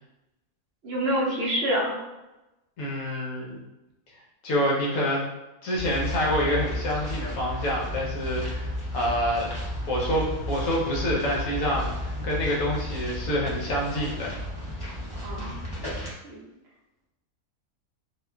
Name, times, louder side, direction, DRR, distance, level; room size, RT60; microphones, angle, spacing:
voice 1, 0.8-2.0 15.2-15.6 16.2-16.4, equal, 60° right, -5 dB, 0.7 m, -27 dB
voice 2, 2.8-3.6 4.4-5.2 5.6-9.5 9.9-14.4, equal, 70° left, -3 dB, 1.0 m, -27 dB
sound 1, 5.8-16.1, left 1 dB, 35° left, 0.4 m, -33 dB
2.7 x 2.3 x 2.3 m, 1.0 s
omnidirectional pair, 1.4 m